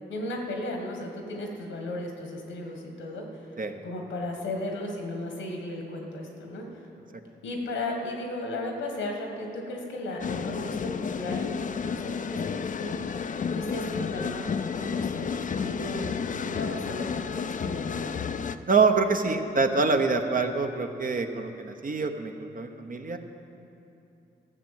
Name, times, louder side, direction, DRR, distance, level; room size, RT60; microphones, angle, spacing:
voice 1, 0.1-3.5 3.8-6.9 7.4-13.0 13.5-18.2, left 1 dB, 85° left, 2 dB, 1.6 m, -35 dB
sound 1, 10.2-18.6, left 6 dB, 45° left, 0.5 m, -31 dB
voice 2, 18.7-23.2, right 4 dB, 45° right, 6 dB, 1.0 m, -25 dB
13.5 x 6.1 x 7.5 m, 2.8 s
supercardioid pair, 45°, 19 cm